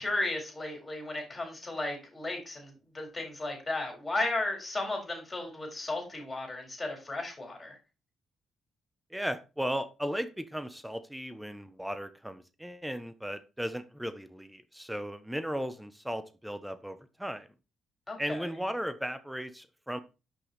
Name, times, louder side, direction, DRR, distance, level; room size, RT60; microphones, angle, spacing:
voice 1, 0.0-7.8 18.1-18.5, left 2 dB, 20° left, 4.1 m, -34 dB
voice 2, 9.1-17.5 18.2-20.0, equal, 5° right, 0.9 m, -36 dB
6.0 x 5.5 x 4.0 m
cardioid pair, 90°, 0 cm